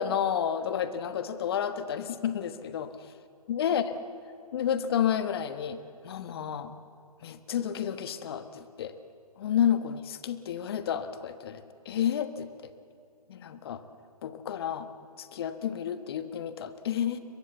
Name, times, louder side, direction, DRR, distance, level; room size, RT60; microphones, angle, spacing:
voice 1, 0.0-2.9 3.5-3.8 4.5-6.7 7.2-8.9 9.4-12.7 13.3-13.8 14.2-14.9 15.2-17.2, left 9 dB, 40° left, 11 dB, 1.3 m, -30 dB
22.0 x 22.0 x 8.0 m, 2.4 s
figure-of-eight pair, 135°, 20 cm